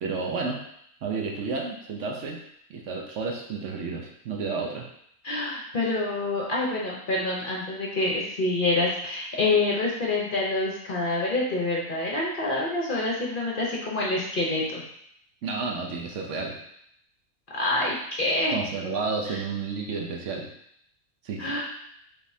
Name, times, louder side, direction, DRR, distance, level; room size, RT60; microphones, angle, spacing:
voice 1, 0.0-0.6 1.0-2.4 2.7-4.9 15.4-16.6 18.5-20.5 21.2-21.5, right 4 dB, 65° right, 1 dB, 0.9 m, -31 dB
voice 2, 5.2-14.8 17.5-18.6 19.3-19.4 21.4-21.6, left 2 dB, 45° left, -4 dB, 0.8 m, -27 dB
5.1 x 3.5 x 2.7 m, 0.72 s
omnidirectional pair, 1.4 m